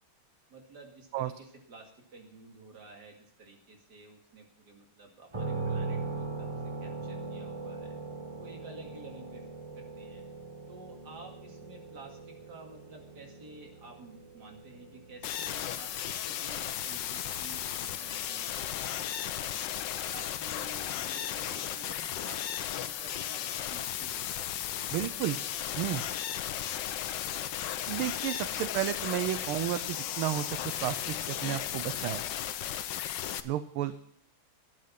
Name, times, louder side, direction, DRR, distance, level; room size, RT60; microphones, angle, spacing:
voice 1, 0.5-6.5 6.8-8.0 8.4-9.5 9.8-10.3 10.7-19.6 20.1-25.0 27.2-27.5, right 3 dB, 50° right, 1 dB, 2.8 m, -52 dB
sound 1, 5.3-19.1, right 3 dB, 15° right, 1.4 m, -41 dB
sound 2, 15.2-33.4, left 11 dB, 70° left, 1.2 m, -35 dB
voice 2, 24.9-25.4 25.8-26.0 27.9-32.2 33.4-34.0, right 13 dB, 80° right, 13 dB, 1.5 m, -32 dB
11.5 x 10.0 x 5.7 m, 0.71 s
omnidirectional pair, 2.4 m